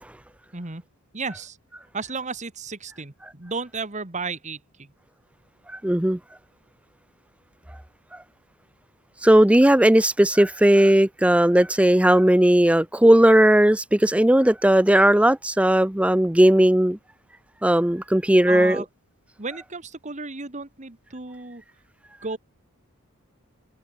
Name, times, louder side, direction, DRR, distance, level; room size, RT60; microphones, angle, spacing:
voice 1, 1.1-1.6 1.9-4.9 18.5-18.8 19.4-21.6 22.2-22.4, right 4 dB, 35° right, 1.8 m, -33 dB
voice 2, 5.8-6.2 9.2-17.0 17.6-18.8, right 1 dB, 5° right, 0.6 m, -17 dB
head